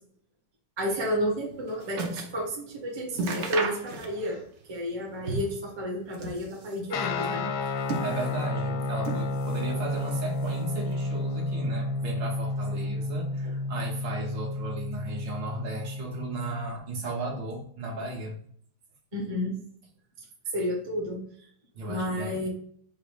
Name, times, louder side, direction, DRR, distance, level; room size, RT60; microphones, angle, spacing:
voice 1, 0.8-4.4 4.7-7.5 19.1-19.5 20.5-21.2 21.9-22.5, equal, 20° right, -2 dB, 0.7 m, -31 dB
sound 1, 1.2-2.4 2.7-2.8 3.1-4.4 4.7-5.6 6.0-6.9 7.5-8.5 9.0-9.7 10.0-10.8 11.4-11.5, right 3 dB, 85° right, 0.6 m, -35 dB
Guitar, 6.9-16.7, left 2 dB, 85° left, 1.5 m, -31 dB
voice 2, 7.8-18.4 21.7-22.5, right 2 dB, 65° right, -1 dB, 1.7 m, -35 dB
4.8 x 2.1 x 4.8 m, 0.63 s
omnidirectional pair, 2.2 m